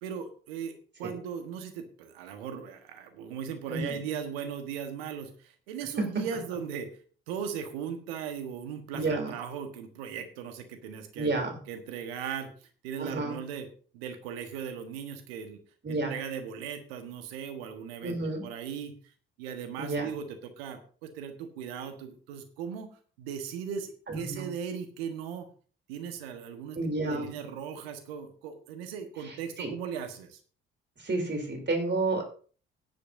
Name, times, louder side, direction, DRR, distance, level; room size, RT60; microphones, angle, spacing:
voice 1, 0.0-6.9 7.3-11.3 11.7-12.5 12.8-13.7 13.9-15.6 15.9-18.9 19.4-22.9 23.2-25.5 25.9-26.8 27.0-30.4, right 7 dB, 75° right, 8 dB, 1.4 m, -38 dB
voice 2, 8.9-9.3 11.2-11.6 13.0-13.4 15.8-16.1 18.0-18.4 19.8-20.1 24.1-24.5 26.7-27.3 29.2-29.7 31.0-32.2, right 2 dB, 35° right, 4 dB, 3.3 m, -30 dB
16.5 x 10.0 x 2.6 m, 0.41 s
figure-of-eight pair, 45°, 30 cm